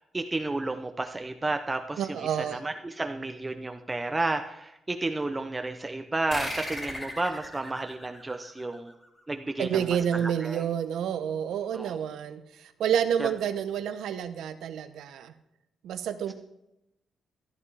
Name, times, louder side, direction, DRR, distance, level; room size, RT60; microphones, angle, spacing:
voice 1, 0.0-9.0 9.3-9.8 10.1-10.6 11.7-11.9 13.2-13.3, right 2 dB, 15° right, 6 dB, 0.5 m, -32 dB
voice 2, 2.0-2.6 9.6-15.3 15.8-16.3, right 8 dB, 85° right, 10 dB, 0.8 m, -29 dB
sound 1, 6.3-9.3, left 1 dB, 20° left, 2.3 m, -38 dB
14.0 x 8.8 x 3.3 m, 0.86 s
cardioid pair, 120°, 0 cm